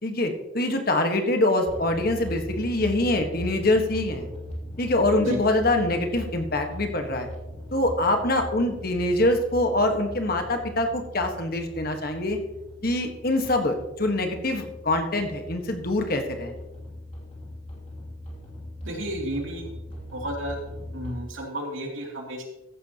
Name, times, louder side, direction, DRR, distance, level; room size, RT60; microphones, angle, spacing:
voice 1, 0.0-4.3 4.8-7.3 7.7-12.4 12.8-16.5, left 1 dB, 50° left, 4 dB, 1.5 m, -24 dB
sound 1, 1.6-21.1, left 1 dB, 35° left, 2.7 m, -39 dB
voice 2, 18.8-19.7 20.1-20.6 20.9-22.4, equal, 85° right, 0 dB, 2.9 m, -32 dB
14.5 x 10.5 x 3.0 m, 1.0 s
head